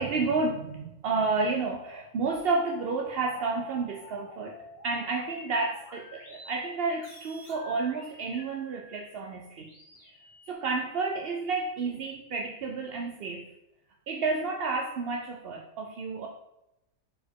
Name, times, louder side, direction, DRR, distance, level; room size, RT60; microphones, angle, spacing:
voice 1, 0.0-4.6 4.8-9.7 10.5-13.5 14.1-16.3, right 3 dB, 60° right, 1 dB, 0.6 m, -30 dB
sound 1, 2.1-10.5, equal, 30° left, 1.8 m, -51 dB
4.9 x 4.3 x 4.7 m, 0.88 s
omnidirectional pair, 1.6 m